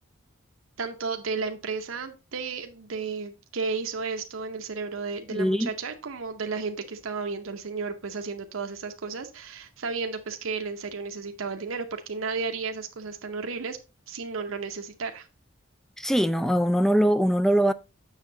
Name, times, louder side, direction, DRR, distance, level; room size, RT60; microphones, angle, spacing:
voice 1, 0.8-13.8 14.1-15.3, right 4 dB, 85° right, 0.8 m, -33 dB
voice 2, 5.3-5.7 16.0-17.7, equal, ahead, 0.3 m, -22 dB
7.3 x 6.5 x 3.9 m
head